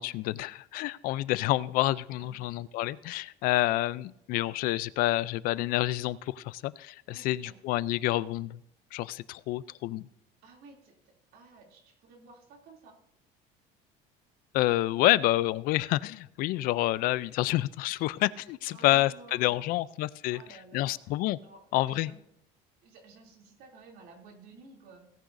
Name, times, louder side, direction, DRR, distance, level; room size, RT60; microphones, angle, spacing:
voice 1, 0.0-8.6 8.9-10.0 14.5-20.4 20.7-21.4 21.7-22.1, left 16 dB, 55° left, 19 dB, 0.4 m, -28 dB
voice 2, 2.2-2.5 3.5-3.6 7.1-7.6 10.4-13.0 18.7-19.8 20.3-21.0 21.4-22.2 22.8-25.1, right 4 dB, 60° right, 2 dB, 2.9 m, -53 dB
17.5 x 10.0 x 2.6 m, 0.77 s
cardioid pair, 165°, 18 cm